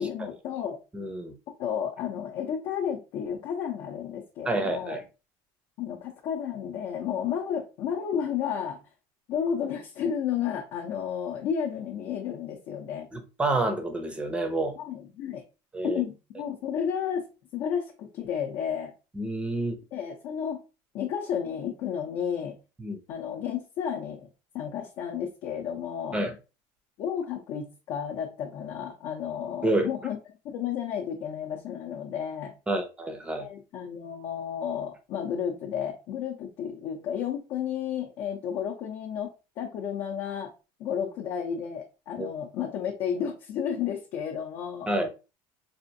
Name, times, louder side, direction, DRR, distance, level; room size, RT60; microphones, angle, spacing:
voice 1, 0.0-0.8 1.6-5.0 5.8-8.8 9.3-13.1 14.8-15.4 15.8-17.3 17.5-18.9 19.9-20.6 20.9-22.6 23.1-24.3 24.5-26.2 27.0-30.2 30.4-32.5 33.4-40.5 40.8-44.9, left 8 dB, 55° left, 0.7 m, -32 dB
voice 2, 0.9-1.4 4.5-5.0 13.1-14.7 15.7-16.0 19.2-19.7 22.8-23.0 26.1-26.3 29.6-29.9 32.7-33.5 42.2-42.3 44.9-45.1, right 2 dB, 10° right, 0.6 m, -28 dB
4.2 x 2.5 x 2.7 m
cardioid pair, 150°, 10 cm